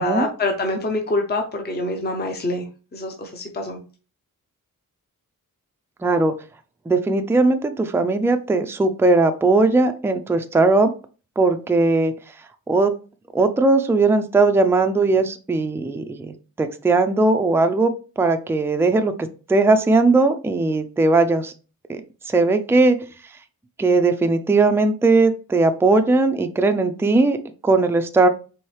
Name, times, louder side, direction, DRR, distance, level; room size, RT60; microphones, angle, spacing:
voice 1, 0.0-2.7 2.9-3.8, left 2 dB, 30° left, 4 dB, 0.6 m, -25 dB
voice 2, 6.0-6.3 6.9-10.9 11.4-12.1 12.7-12.9 13.3-19.1 19.5-21.5 21.9-22.0 22.3-23.0 23.8-27.4 27.6-28.3, right 3 dB, 5° right, 7 dB, 0.3 m, -18 dB
4.6 x 3.1 x 3.1 m, 0.36 s
wide cardioid pair, 125°, 34 cm